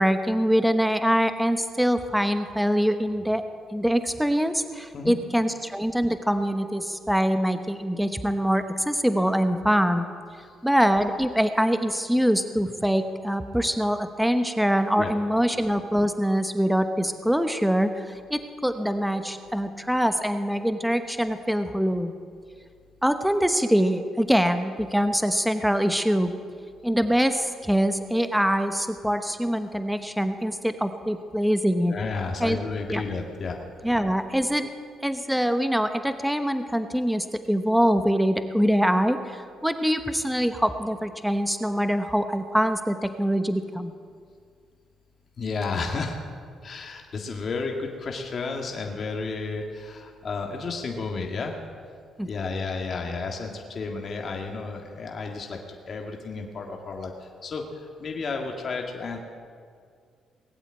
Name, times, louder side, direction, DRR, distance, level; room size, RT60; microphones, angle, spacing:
voice 1, 0.0-3.4 3.7-10.1 10.6-22.1 23.0-26.3 26.8-31.9 32.4-32.6 32.9-33.0 33.8-34.7 35.0-43.9 52.2-52.3, equal, ahead, 8 dB, 1.0 m, -24 dB
voice 2, 31.9-33.6 45.4-46.2 46.6-51.6 52.3-55.6 55.9-59.2, left 4 dB, 50° left, 1 dB, 2.0 m, -32 dB
19.5 x 8.1 x 8.8 m, 2.1 s
cardioid pair, 90°, 0 cm